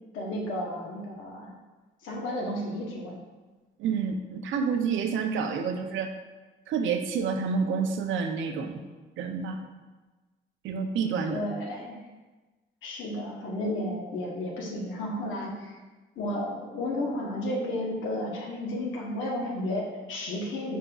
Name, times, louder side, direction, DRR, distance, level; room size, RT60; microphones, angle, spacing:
voice 1, 0.1-1.5 2.0-3.2 11.3-12.0 12.8-15.8 16.2-20.8, left 1 dB, 75° left, -1 dB, 0.9 m, -32 dB
voice 2, 3.8-6.1 6.7-8.8 9.2-9.6 10.6-11.4, right 5 dB, 80° right, 6 dB, 0.5 m, -28 dB
5.2 x 4.0 x 2.3 m, 1.2 s
cardioid pair, 90°, 20 cm